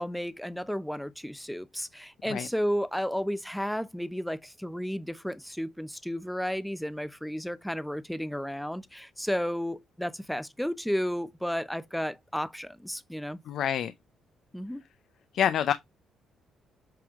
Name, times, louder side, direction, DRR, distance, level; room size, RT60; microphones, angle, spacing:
voice 1, 0.0-13.4 14.5-14.8, equal, ahead, 0.7 m, -33 dB
voice 2, 13.5-13.9 15.3-15.7, left 9 dB, 70° left, 0.5 m, -26 dB
7.6 x 3.5 x 3.6 m
cardioid pair, 90°, 0 cm